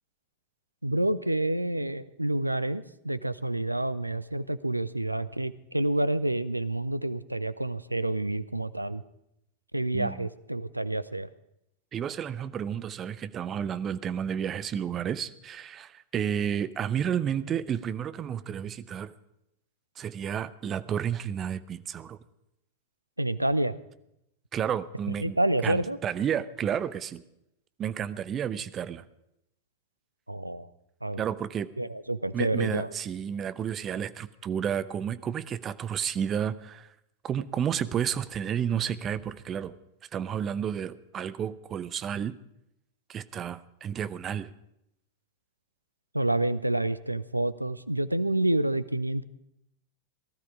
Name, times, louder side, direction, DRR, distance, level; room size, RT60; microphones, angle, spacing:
voice 1, 0.8-9.0 9.7-11.3 23.2-23.8 25.2-26.0 30.3-30.7 31.0-31.2 31.8-32.9 46.1-49.2, right 1 dB, 85° right, 16 dB, 0.6 m, -28 dB
voice 2, 9.9-10.3 11.9-19.1 20.0-22.2 24.5-25.4 25.6-27.2 27.8-29.0 31.2-31.7 32.3-36.9 37.2-39.7 40.1-42.4 43.1-44.5, right 8 dB, 25° right, 15 dB, 0.7 m, -31 dB
17.5 x 13.0 x 4.9 m, 0.82 s
figure-of-eight pair, 90°, 0 cm